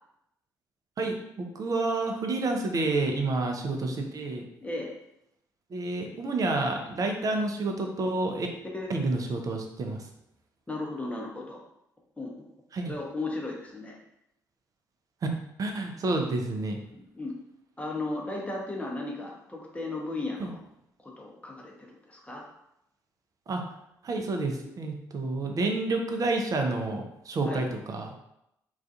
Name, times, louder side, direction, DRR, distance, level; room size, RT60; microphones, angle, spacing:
voice 1, 1.0-4.4 5.7-8.5 8.9-10.1 12.7-12.9 15.6-16.8 20.4-20.5 23.5-23.6 24.0-28.1, right 2 dB, 40° right, 3 dB, 0.5 m, -29 dB
voice 2, 4.6-4.9 8.7-8.9 10.7-11.6 12.2-12.5 12.9-14.0 16.9-17.3 17.8-20.6 21.0-22.4 27.5-27.7, left 2 dB, 15° left, -1 dB, 0.7 m, -35 dB
2.3 x 2.3 x 2.6 m, 0.81 s
figure-of-eight pair, 45°, 9 cm